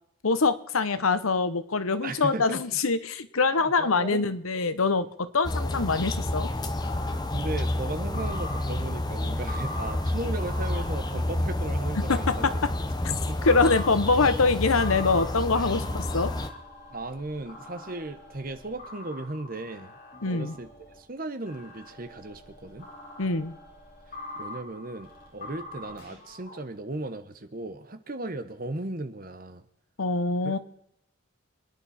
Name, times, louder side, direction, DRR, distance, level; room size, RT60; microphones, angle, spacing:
voice 1, 0.2-6.5 12.1-12.5 13.4-16.3 20.2-20.5 23.2-23.5 30.0-30.6, left 4 dB, 85° left, 12 dB, 1.0 m, -24 dB
voice 2, 2.0-2.8 3.4-4.4 7.3-12.5 13.1-13.4 15.6-15.9 16.9-19.9 20.2-22.9 24.4-29.6 30.4-30.6, right 2 dB, 45° right, 10 dB, 1.1 m, -36 dB
sound 1, 5.4-16.5, left 1 dB, 20° left, 0.9 m, -30 dB
sound 2, 6.6-21.0 21.5-26.6, left 1 dB, 40° left, 4.6 m, -44 dB
26.5 x 10.0 x 4.3 m, 0.78 s
head